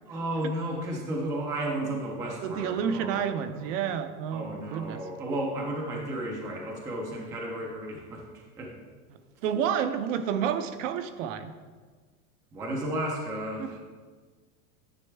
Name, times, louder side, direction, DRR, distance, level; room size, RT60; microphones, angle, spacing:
voice 1, 0.1-4.0 4.3-8.7 12.5-13.8, right 1 dB, 10° right, 0 dB, 0.4 m, -33 dB
voice 2, 2.4-5.0 9.4-11.5 13.6-13.7, right 8 dB, 55° right, 9 dB, 0.7 m, -30 dB
9.9 x 6.3 x 3.3 m, 1.5 s
supercardioid pair, 155°, 47 cm